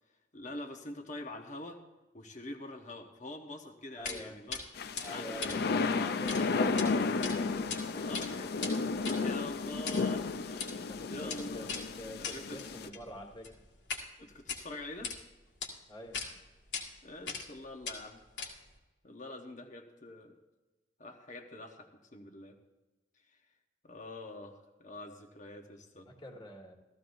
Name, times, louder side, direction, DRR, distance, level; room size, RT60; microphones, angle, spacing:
voice 1, 0.3-1.8 2.1-5.7 7.9-8.5 9.2-11.7 12.3-12.9 14.2-15.1 17.0-18.3 19.0-20.4 21.0-22.6 23.3-23.4 23.8-26.1, left 1 dB, 45° left, 4 dB, 1.0 m, -45 dB
sound 1, 4.0-4.2 4.5-4.6 5.0-6.4 6.7-6.9 7.2-7.8 8.1-14.1 14.4-15.2 15.6-15.7 16.1-16.3 16.7-16.8 17.3-17.6 17.8-18.8, left 5 dB, 85° left, 2.1 m, -40 dB
voice 2, 4.0-8.6 10.8-13.5 15.9-16.2 26.1-26.7, equal, 30° left, 0 dB, 1.8 m, -47 dB
sound 2, 4.8-12.9, left 4 dB, 60° left, 0.5 m, -33 dB
15.5 x 14.5 x 2.6 m, 1.1 s
head